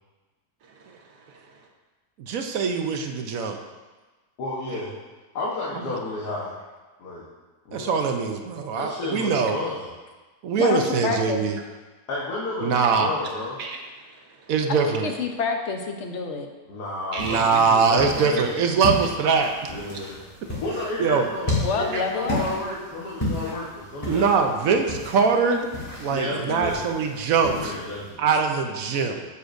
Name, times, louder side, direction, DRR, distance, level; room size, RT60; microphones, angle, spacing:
voice 1, 0.6-1.7 13.6-14.5 17.1-17.5 18.4-18.5 21.9-22.0 26.2-26.4, right 4 dB, 85° right, 1 dB, 1.7 m, -37 dB
voice 2, 2.3-3.6 7.7-9.6 10.4-11.6 12.6-13.1 14.5-15.1 17.2-19.5 21.0-21.3 24.1-25.7 26.0-27.7 28.2-29.3, right 5 dB, 65° right, 5 dB, 1.0 m, -22 dB
voice 3, 4.4-4.9 5.3-6.6 7.0-7.2 7.7-8.0 8.7-9.9 12.1-13.6 16.7-18.5 19.7-20.2 20.6-24.4 24.6-24.8 26.1-26.9 27.6-28.3, left 2 dB, 75° left, -6 dB, 1.8 m, -31 dB
voice 4, 10.6-11.5 14.7-16.5 21.6-22.5, left 4 dB, 50° left, 4 dB, 1.0 m, -27 dB
sound 1, 17.2-28.1, left 1 dB, 10° left, 2.9 m, -33 dB
9.5 x 8.2 x 2.6 m, 1.3 s
omnidirectional pair, 1.7 m